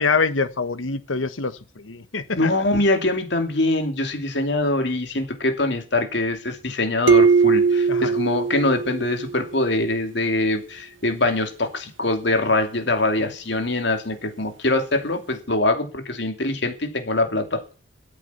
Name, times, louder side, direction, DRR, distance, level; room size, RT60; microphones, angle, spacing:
voice 1, 0.0-2.5 7.9-8.1, left 4 dB, 80° left, 1.3 m, -25 dB
voice 2, 2.4-17.6, left 2 dB, 60° left, 2.7 m, -23 dB
sound 1, 7.1-9.6, right 5 dB, 70° right, 1.3 m, -19 dB
13.5 x 8.3 x 8.3 m
head